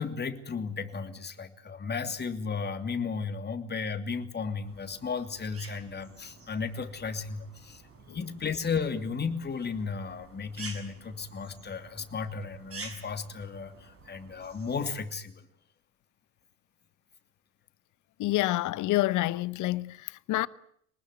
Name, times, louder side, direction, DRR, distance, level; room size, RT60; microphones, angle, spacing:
voice 1, 0.0-7.8 8.1-15.5, left 5 dB, 25° left, 2.8 m, -34 dB
sound 1, 4.6-14.9, right 3 dB, 35° right, 7.0 m, -49 dB
voice 2, 18.2-20.5, left 17 dB, 55° left, 0.9 m, -28 dB
24.0 x 20.0 x 9.5 m
hypercardioid pair, 65°, 37 cm